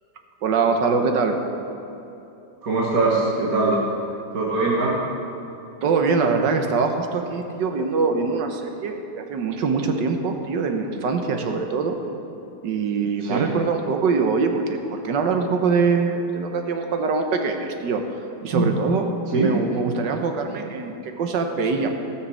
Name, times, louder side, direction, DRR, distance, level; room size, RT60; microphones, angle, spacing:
voice 1, 0.4-1.4 5.8-12.0 12.6-18.0 18.4-19.1 19.3-21.9, right 4 dB, 80° right, 5 dB, 1.6 m, -23 dB
voice 2, 2.6-3.8 4.3-5.0 13.2-13.5 18.5-18.7 19.3-19.5, right 3 dB, 55° right, -5 dB, 1.9 m, -21 dB
16.0 x 6.6 x 6.3 m, 2.9 s
omnidirectional pair, 1.9 m